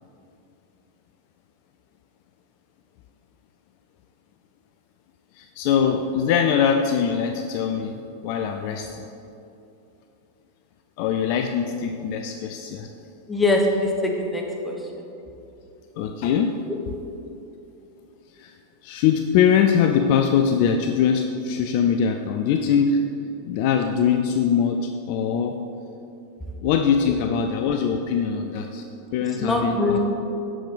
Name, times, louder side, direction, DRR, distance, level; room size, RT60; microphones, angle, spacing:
voice 1, 5.4-9.0 11.0-12.9 16.0-16.6 18.4-18.5 18.8-23.0 23.4-25.6 26.6-28.8 29.1-30.0, left 7 dB, 45° left, 5 dB, 0.3 m, -22 dB
voice 2, 13.3-15.0 16.7-16.8 26.4-26.5 29.2-30.0, left 2 dB, 10° left, 1 dB, 1.1 m, -23 dB
7.6 x 6.5 x 4.0 m, 2.8 s
figure-of-eight pair, 90°, 0 cm